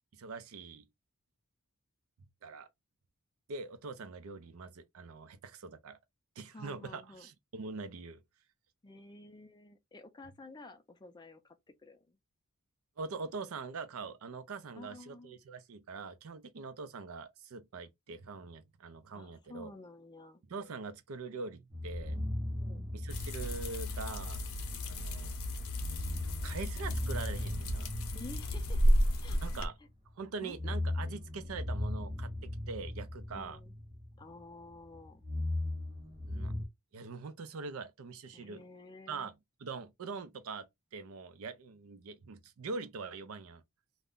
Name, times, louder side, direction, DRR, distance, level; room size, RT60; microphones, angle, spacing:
voice 1, 0.1-0.9 2.4-2.7 3.5-6.0 6.4-8.2 13.0-19.7 20.5-24.4 24.9-25.3 26.4-27.9 29.4-29.7 30.2-33.6 36.3-36.5 36.9-38.6 39.1-39.3 39.6-43.6, right 4 dB, 70° right, 0.5 m, -43 dB
voice 2, 6.5-7.3 8.8-11.6 11.8-12.2 14.8-15.3 19.1-20.4 22.5-22.9 28.1-28.8 29.2-29.4 30.4-30.8 33.3-33.7 34.2-35.2 38.3-39.3, left 2 dB, 20° left, 0.4 m, -51 dB
sound 1, 21.7-24.6 25.8-29.7 30.4-34.4 34.7-36.6, left 1 dB, 25° right, 1.0 m, -38 dB
sound 2, 23.1-29.7, equal, 75° left, 0.6 m, -32 dB
2.4 x 2.1 x 3.6 m
head